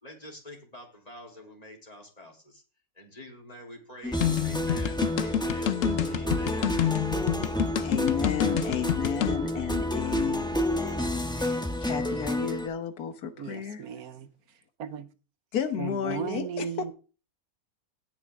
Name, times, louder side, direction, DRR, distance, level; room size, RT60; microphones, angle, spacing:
voice 1, 0.0-2.6 2.9-6.8, left 1 dB, 25° left, 3.5 m, -47 dB
sound 1, 4.0-12.7, left 1 dB, 5° left, 0.9 m, -30 dB
sound 2, 4.2-9.4, left 11 dB, 65° left, 1.0 m, -28 dB
voice 2, 7.8-13.9 15.5-16.9, left 8 dB, 90° left, 1.7 m, -33 dB
voice 3, 13.4-14.3 14.8-15.1 15.8-16.9, right 7 dB, 80° right, 1.3 m, -36 dB
17.5 x 6.1 x 3.5 m
omnidirectional pair, 1.6 m